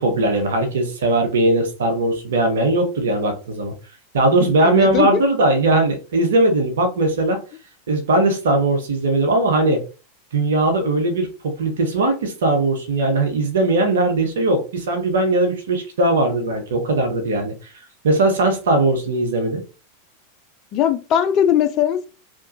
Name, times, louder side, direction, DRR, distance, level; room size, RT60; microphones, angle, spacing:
voice 1, 0.0-3.7 4.1-7.4 7.9-9.8 10.3-17.7 18.0-19.6, right 2 dB, 65° right, 0.7 m, -19 dB
voice 2, 4.4-5.2 20.7-22.1, left 9 dB, 40° left, 0.4 m, -19 dB
2.9 x 2.2 x 2.6 m
figure-of-eight pair, 90°, 0 cm